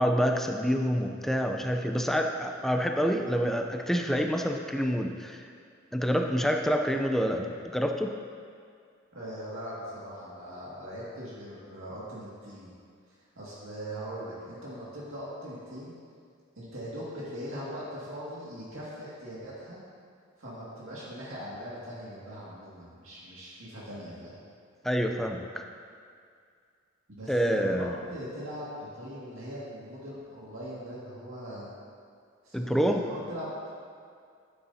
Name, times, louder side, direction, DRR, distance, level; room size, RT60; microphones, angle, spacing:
voice 1, 0.0-5.5 5.9-8.1 24.8-25.6 27.3-27.9 32.5-33.0, equal, ahead, 3 dB, 0.4 m, -27 dB
voice 2, 9.1-12.7 13.4-15.9 16.6-19.8 20.4-24.4 27.1-31.7 32.4-33.5, equal, 75° right, -8 dB, 2.1 m, -40 dB
11.5 x 9.8 x 2.8 m, 2.2 s
head